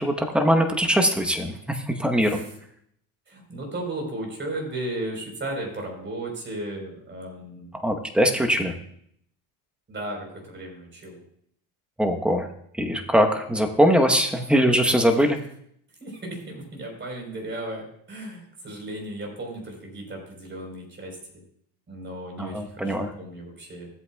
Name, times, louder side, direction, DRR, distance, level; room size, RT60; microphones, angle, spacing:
voice 1, 0.0-2.4 7.8-8.7 12.0-12.5 12.7-15.4 22.4-23.1, equal, 5° right, 4 dB, 1.0 m, -21 dB
voice 2, 3.3-7.7 9.9-11.2 16.0-21.4 21.9-23.9, right 1 dB, 25° right, 1 dB, 4.0 m, -35 dB
16.5 x 8.0 x 2.3 m, 0.69 s
cardioid pair, 115°, 41 cm